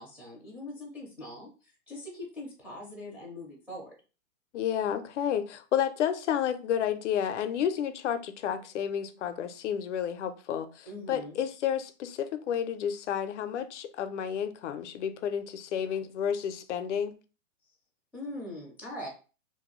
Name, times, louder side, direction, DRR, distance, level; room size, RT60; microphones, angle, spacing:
voice 1, 0.0-3.9 10.9-11.4 18.1-19.1, left 1 dB, 5° right, 0.4 m, -42 dB
voice 2, 4.5-17.1, left 9 dB, 65° left, 0.5 m, -31 dB
2.6 x 2.2 x 3.0 m
hypercardioid pair, 135°, 38 cm